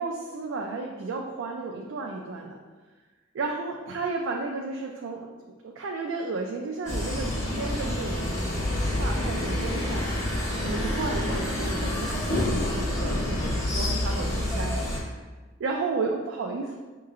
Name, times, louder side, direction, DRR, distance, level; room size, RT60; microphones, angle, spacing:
voice 1, 0.0-2.6 3.3-8.4 9.0-10.1 10.6-15.2 15.6-16.8, right 3 dB, 75° right, 1 dB, 0.4 m, -33 dB
sound 1, 6.9-15.0, left 1 dB, 15° left, 0.7 m, -28 dB
5.5 x 3.0 x 2.4 m, 1.3 s
head